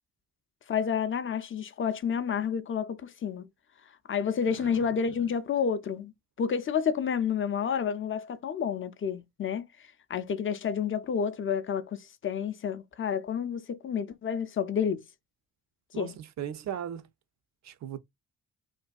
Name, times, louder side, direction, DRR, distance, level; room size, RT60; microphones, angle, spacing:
voice 1, 0.7-3.5 4.1-6.1 6.4-15.0 15.9-16.2, left 7 dB, 30° left, 0.5 m, -30 dB
voice 2, 15.9-17.1 17.6-18.0, right 9 dB, 40° right, 0.5 m, -37 dB
2.5 x 2.2 x 2.3 m
hypercardioid pair, 40°, 42 cm